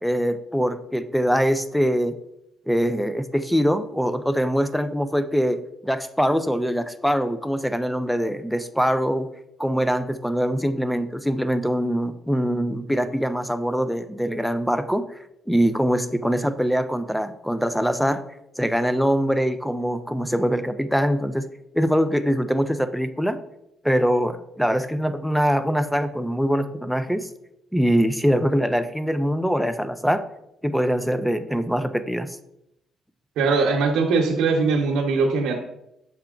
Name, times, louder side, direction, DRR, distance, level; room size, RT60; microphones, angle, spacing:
voice 1, 0.0-2.2 2.7-9.3 9.6-15.1 15.5-18.2 18.6-21.5 21.7-23.4 23.8-27.3 27.7-30.2 30.6-32.4, equal, ahead, 11 dB, 0.5 m, -23 dB
voice 2, 33.4-35.6, right 4 dB, 85° right, -1 dB, 0.9 m, -21 dB
6.9 x 4.5 x 3.8 m, 0.81 s
cardioid pair, 90°, 0 cm